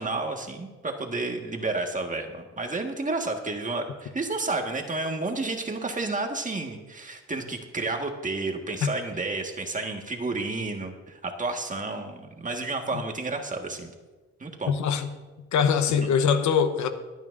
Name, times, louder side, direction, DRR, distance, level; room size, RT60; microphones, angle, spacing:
voice 1, 0.0-13.9 14.4-14.7, right 3 dB, 25° right, 3 dB, 1.7 m, -31 dB
voice 2, 14.7-15.1 15.5-16.9, left 7 dB, 75° left, 8 dB, 1.1 m, -22 dB
24.0 x 9.0 x 2.6 m, 1.2 s
cardioid pair, 90°, 30 cm